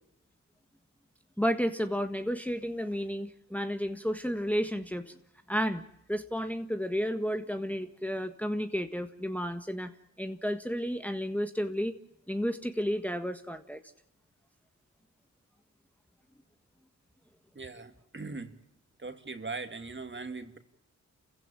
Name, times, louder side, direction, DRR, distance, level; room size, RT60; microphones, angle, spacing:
voice 1, 1.4-5.1 5.5-5.8 6.1-9.9 10.2-12.0 12.3-13.8, equal, 5° left, 6 dB, 1.6 m, -32 dB
voice 2, 17.5-18.6 19.0-20.6, right 3 dB, 35° right, 7 dB, 2.6 m, -40 dB
28.0 x 16.0 x 7.3 m, 0.80 s
supercardioid pair, 45°, 34 cm